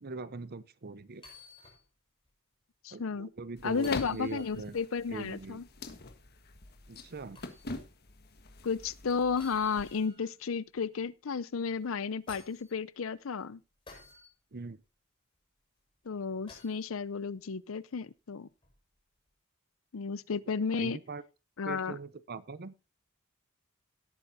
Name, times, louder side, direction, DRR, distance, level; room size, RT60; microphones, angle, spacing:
voice 1, 0.0-1.2 2.9-4.8 5.1-5.6 6.9-7.4 14.5-14.8 20.7-21.2 21.6-22.7, right 3 dB, 50° right, 0.7 m, -41 dB
sound 1, 1.1-1.8 2.3-2.4 3.8-4.8 7.3-7.6 9.4-10.3 11.8-12.7 13.9-14.3 16.5-16.8 18.6-18.8, left 3 dB, 25° left, 5.6 m, -53 dB
voice 2, 2.8-3.3 3.6-5.6 8.6-13.6 16.1-18.5 19.9-21.0 21.6-22.0, left 5 dB, 70° left, 0.6 m, -33 dB
sound 2, 3.6-10.1, left 3 dB, 50° left, 1.5 m, -44 dB
17.5 x 8.8 x 2.7 m
head